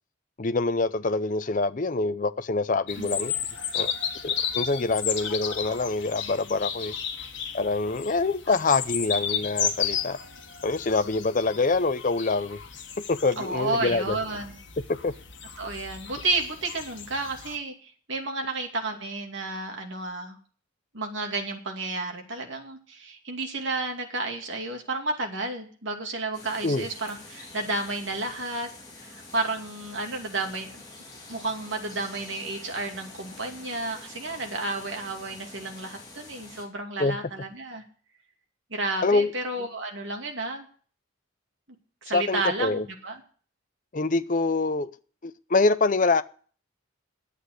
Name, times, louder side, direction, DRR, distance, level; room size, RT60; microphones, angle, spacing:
voice 1, 0.4-3.3 3.7-3.9 4.2-6.9 7.5-10.2 10.6-12.6 13.1-14.2 14.9-15.1 26.6-26.9 37.0-37.2 39.0-39.3 42.1-42.9 43.9-44.9 45.2-46.2, left 3 dB, 40° left, 0.5 m, -25 dB
sound 1, 2.9-17.6, left 8 dB, 60° left, 1.6 m, -33 dB
voice 2, 13.4-14.6 15.6-20.4 20.9-28.7 29.0-30.8 31.3-37.8 38.7-40.7 42.0-43.2, right 2 dB, 65° right, 2.5 m, -31 dB
sound 2, 26.3-36.6, left 2 dB, 20° left, 3.3 m, -46 dB
10.0 x 8.3 x 8.1 m
head